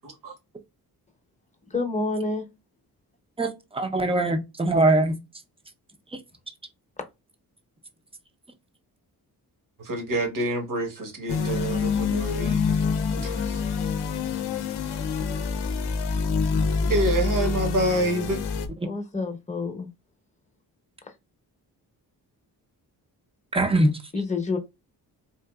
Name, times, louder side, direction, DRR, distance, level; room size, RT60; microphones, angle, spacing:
voice 1, 0.0-0.3 9.8-12.6 13.2-13.6 16.5-18.4, right 1 dB, 55° right, 1.3 m, -27 dB
voice 2, 1.7-2.4 18.8-19.9 24.1-24.6, left 3 dB, 20° left, 0.8 m, -28 dB
voice 3, 3.4-5.1 6.1-6.2 23.5-24.1, right 2 dB, 15° right, 0.6 m, -22 dB
sound 1, 11.3-18.7, left 5 dB, 85° left, 0.6 m, -26 dB
3.8 x 2.5 x 2.3 m
cardioid pair, 90°, 39 cm